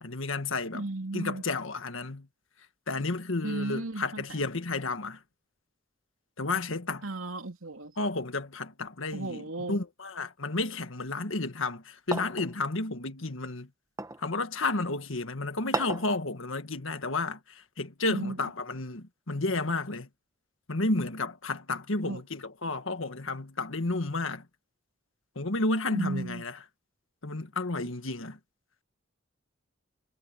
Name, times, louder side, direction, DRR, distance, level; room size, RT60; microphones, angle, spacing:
voice 1, 0.0-0.9 1.1-2.3 2.9-5.2 6.4-7.1 8.0-13.7 14.2-20.1 20.7-24.5 25.3-26.6 27.2-28.4, left 2 dB, 75° left, 1.7 m, -32 dB
voice 2, 0.7-1.4 3.4-4.2 7.0-7.9 9.1-9.8 18.1-18.4 22.0-22.2 25.9-26.4, right 2 dB, 90° right, 2.8 m, -34 dB
sound 1, 12.1-12.5 14.0-14.3 15.7-16.1, right 2 dB, 15° right, 1.1 m, -33 dB
head